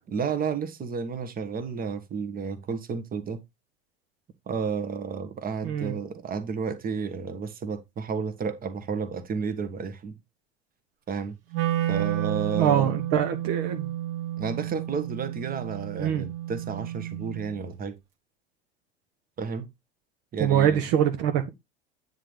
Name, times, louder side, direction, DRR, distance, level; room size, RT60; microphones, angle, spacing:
voice 1, 0.1-3.4 4.5-10.1 11.1-11.4 11.9-13.0 14.4-18.0 19.4-19.7 20.3-20.8, right 6 dB, 30° right, 1.6 m, -31 dB
Wind instrument woodwind instrument, 11.5-17.6, right 13 dB, 65° right, 2.0 m, -31 dB
voice 2, 12.5-13.9 16.0-16.2 20.4-21.5, right 9 dB, 50° right, 1.3 m, -24 dB
9.6 x 4.1 x 5.0 m
figure-of-eight pair, 75°, 31 cm